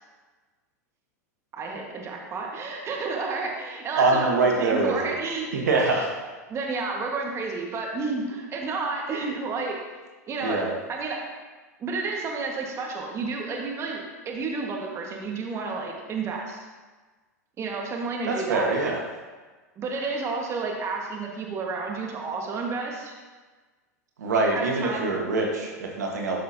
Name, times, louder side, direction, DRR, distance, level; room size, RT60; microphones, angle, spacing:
voice 1, 1.5-6.0 6.5-9.8 10.3-11.2 11.8-16.6 17.6-18.8 19.8-23.2 24.5-25.1, right 4 dB, 30° right, 0 dB, 1.7 m, -31 dB
voice 2, 4.0-5.1 5.5-6.1 10.4-10.7 18.2-19.0 24.2-26.4, right 3 dB, 80° right, 0 dB, 1.5 m, -24 dB
12.0 x 6.1 x 2.9 m, 1.3 s
hypercardioid pair, 100°, 9 cm